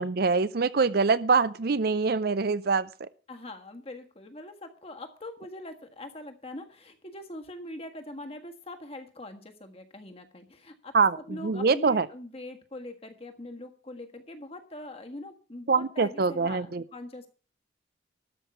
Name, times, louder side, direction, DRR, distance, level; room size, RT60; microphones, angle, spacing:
voice 1, 0.0-2.9 10.9-12.1 15.7-16.8, right 4 dB, 55° right, 16 dB, 0.5 m, -24 dB
voice 2, 3.3-17.3, left 1 dB, 30° left, 5 dB, 1.6 m, -42 dB
13.0 x 5.6 x 8.3 m, 0.39 s
head